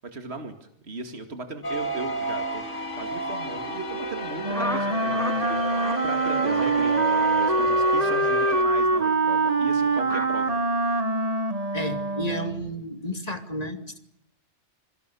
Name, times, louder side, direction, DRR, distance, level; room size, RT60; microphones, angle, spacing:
voice 1, 0.0-2.6 2.9-10.6, right 3 dB, 60° right, 7 dB, 2.6 m, -37 dB
sound 1, 1.6-8.6, left 1 dB, 80° left, 3.1 m, -32 dB
Wind instrument woodwind instrument, 4.4-12.7, right 3 dB, 35° right, 1.4 m, -24 dB
sound 2, 4.5-5.4 5.7-6.0 6.4-6.7 7.1-7.3 7.9-8.2 8.9-9.1 10.0-10.3, equal, 5° left, 1.7 m, -34 dB
voice 2, 11.7-14.0, equal, 30° left, 8 dB, 2.7 m, -32 dB
27.0 x 24.5 x 7.0 m, 0.76 s
omnidirectional pair, 1.2 m